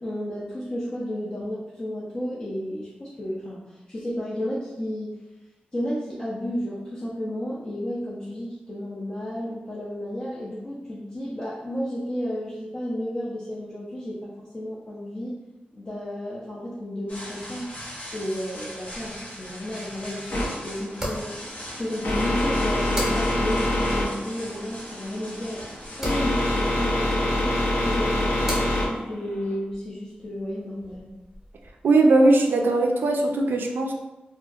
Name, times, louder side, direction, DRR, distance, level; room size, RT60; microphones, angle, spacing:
voice 1, 0.0-5.2 5.7-15.4 15.7-17.7 18.1-25.6 26.0-31.1, equal, 25° left, -7 dB, 0.4 m, -32 dB
sound 1, 17.1-27.7, equal, 45° left, 0.9 m, -41 dB
sound 2, 18.9-31.7, equal, 15° right, 0.7 m, -40 dB
sound 3, 20.3-29.5, left 1 dB, 90° left, 0.7 m, -25 dB
voice 2, 31.8-33.9, right 2 dB, 80° right, 3 dB, 0.3 m, -19 dB
2.7 x 2.4 x 2.3 m, 1.0 s
wide cardioid pair, 175°, 3 cm